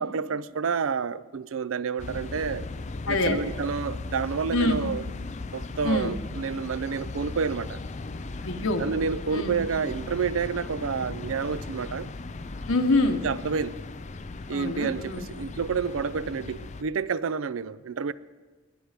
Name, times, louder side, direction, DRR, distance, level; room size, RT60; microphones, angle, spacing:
voice 1, 0.0-2.7 3.1-5.1 5.5-7.8 8.8-12.1 13.2-13.8 14.5-18.1, right 5 dB, 85° right, 0.5 m, -29 dB
sound 1, 2.0-16.8, left 3 dB, 35° left, 0.5 m, -37 dB
voice 2, 3.1-3.4 4.5-4.8 5.8-6.1 8.4-8.8 9.3-9.5 12.7-13.2 14.5-15.3, left 2 dB, 85° left, 1.3 m, -25 dB
20.5 x 9.4 x 5.1 m
head